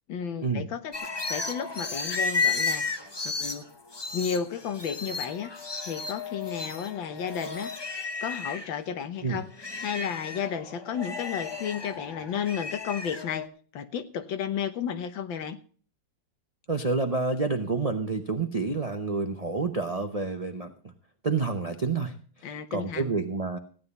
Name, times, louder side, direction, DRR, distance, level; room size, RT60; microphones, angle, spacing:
voice 1, 0.1-0.9 1.3-2.9 3.2-3.7 4.1-5.5 5.8-7.7 8.2-13.5 13.7-15.6 22.4-23.2, left 7 dB, 80° left, 9 dB, 1.8 m, -33 dB
sound 1, 0.9-8.7 9.2-13.5, left 4 dB, 35° left, 0.4 m, -33 dB
voice 2, 16.7-20.7 21.2-22.1 22.7-23.6, right 4 dB, 50° right, 5 dB, 0.4 m, -28 dB
15.5 x 10.0 x 4.1 m, 0.43 s
omnidirectional pair, 2.1 m